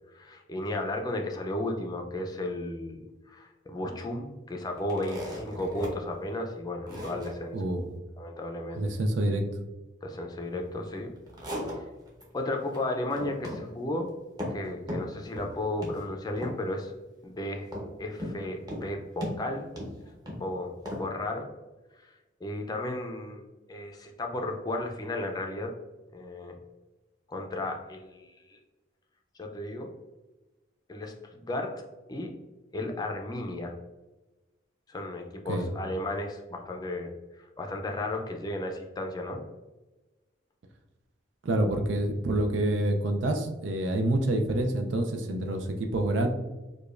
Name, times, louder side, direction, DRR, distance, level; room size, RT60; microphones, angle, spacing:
voice 1, 0.1-3.0 3.3-7.6 8.2-8.9 10.0-11.1 11.7-11.9 12.3-14.1 14.5-16.9 17.2-17.7 18.0-19.7 20.4-21.5 22.0-22.1 22.4-23.4 23.7-25.7 26.1-26.5 27.3-28.6 29.4-29.9 30.9-31.8 32.1-32.3 32.7-33.7 34.9-39.4, left 1 dB, 20° left, 3 dB, 0.4 m, -34 dB
sound 1, 4.8-5.9 6.3-6.4 6.9-7.3 11.0-12.2 12.6-12.8 13.1-13.6 13.9-14.6 14.9-15.5 15.8-16.0 16.4-16.8 17.7-18.4 18.7-18.9 19.2-20.4 20.8-21.0, left 1 dB, 20° right, 0.8 m, -36 dB
voice 2, 7.5-7.9 8.8-9.4 35.5-35.7 41.4-46.3, right 1 dB, 85° right, 5 dB, 0.5 m, -27 dB
4.8 x 2.3 x 2.4 m, 1.1 s
head